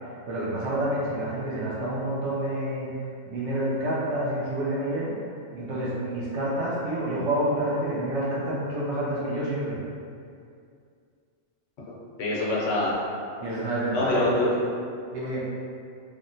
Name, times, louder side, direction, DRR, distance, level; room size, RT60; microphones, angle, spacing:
voice 1, 0.3-2.9 3.3-5.1 5.5-9.8 13.4-14.3 15.1-15.4, right 1 dB, 75° right, -6 dB, 0.9 m, -28 dB
voice 2, 11.9-12.9 13.9-14.5, left 2 dB, 85° left, -5 dB, 1.0 m, -26 dB
3.4 x 2.1 x 2.5 m, 2.3 s
omnidirectional pair, 1.2 m